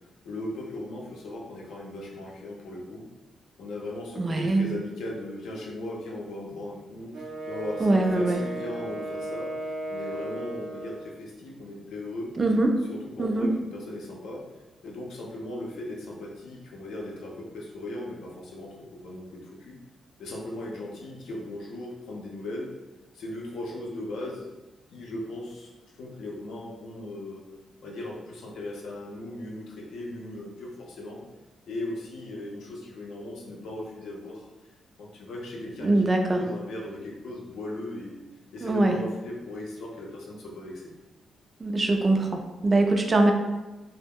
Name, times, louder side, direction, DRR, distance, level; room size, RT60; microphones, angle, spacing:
voice 1, 0.2-3.1 3.6-9.5 9.9-12.3 12.9-14.5 14.8-19.8 20.2-22.7 23.1-24.5 24.9-25.7 26.0-27.5 27.8-31.2 31.7-34.5 35.0-36.1 36.3-38.2 38.5-40.9, left 1 dB, 80° left, -1 dB, 0.5 m, -38 dB
voice 2, 4.2-4.7 7.8-8.4 12.4-12.7 13.2-13.5 35.8-36.4 38.6-39.0 41.6-43.3, right 2 dB, 25° right, 3 dB, 0.3 m, -23 dB
Wind instrument woodwind instrument, 7.1-11.1, right 1 dB, 75° right, 0.6 m, -35 dB
2.3 x 2.0 x 3.5 m, 1.1 s
wide cardioid pair, 155°, 0 cm